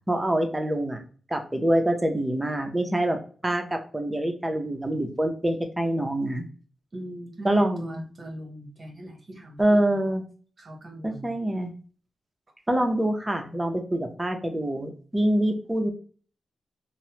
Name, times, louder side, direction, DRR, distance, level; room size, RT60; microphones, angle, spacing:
voice 1, 0.1-1.0 1.3-3.2 3.4-6.4 7.4-7.9 9.6-10.2 11.0-11.7 12.7-15.9, right 1 dB, 15° right, 4 dB, 0.6 m, -25 dB
voice 2, 6.9-10.0 10.6-11.4, right 1 dB, 40° right, 0 dB, 1.0 m, -40 dB
2.8 x 2.0 x 2.9 m, 0.40 s
wide cardioid pair, 100°, 0 cm